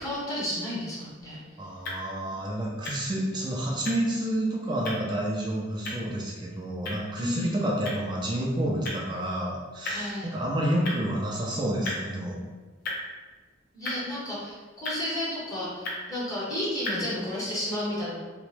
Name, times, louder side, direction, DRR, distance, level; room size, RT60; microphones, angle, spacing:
voice 1, 0.0-1.4 7.2-7.5 9.9-10.3 13.7-18.1, left 1 dB, 20° left, -7 dB, 0.7 m, -32 dB
sound 1, 1.0-17.1, left 1 dB, 50° left, 0.6 m, -40 dB
voice 2, 1.6-12.4, right 1 dB, 25° right, -3 dB, 0.4 m, -29 dB
2.9 x 2.1 x 3.1 m, 1.3 s
head